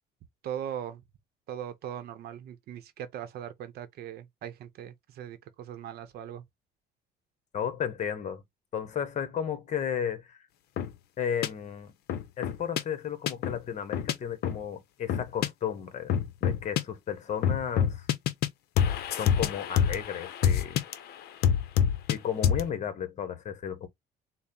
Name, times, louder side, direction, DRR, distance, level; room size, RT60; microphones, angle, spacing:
voice 1, 0.4-1.0 1.5-6.4, right 10 dB, 70° right, 0.7 m, -39 dB
voice 2, 7.5-8.4 8.7-10.4 11.2-11.9 12.4-16.1 16.4-18.1 19.2-20.8 22.1-23.9, left 8 dB, 45° left, 0.9 m, -33 dB
sound 1, 10.8-10.9 11.4-11.5 12.1-12.8 13.3-13.6 13.9-14.1 14.4-14.6 15.1-15.5 16.1-16.8 17.4-18.5 18.8-20.9 21.4-22.2 22.4-22.7, left 8 dB, 70° left, 0.6 m, -26 dB
4.1 x 2.1 x 3.7 m
cardioid pair, 110°, 17 cm